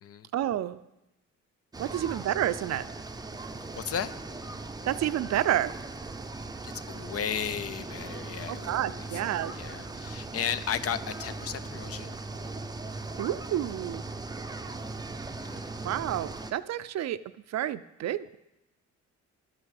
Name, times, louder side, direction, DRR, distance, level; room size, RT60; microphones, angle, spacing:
voice 1, 0.3-0.8 1.8-2.8 4.8-5.7 8.5-9.5 13.2-14.0 15.8-17.2 17.5-18.4, right 12 dB, 60° right, 14 dB, 0.5 m, -29 dB
sound 1, 1.7-16.5, right 3 dB, 15° right, 0.6 m, -39 dB
voice 2, 3.7-4.1 6.6-12.1 15.4-15.7, left 8 dB, 50° left, 14 dB, 0.6 m, -35 dB
11.5 x 6.0 x 6.5 m, 0.92 s
cardioid pair, 90°, 30 cm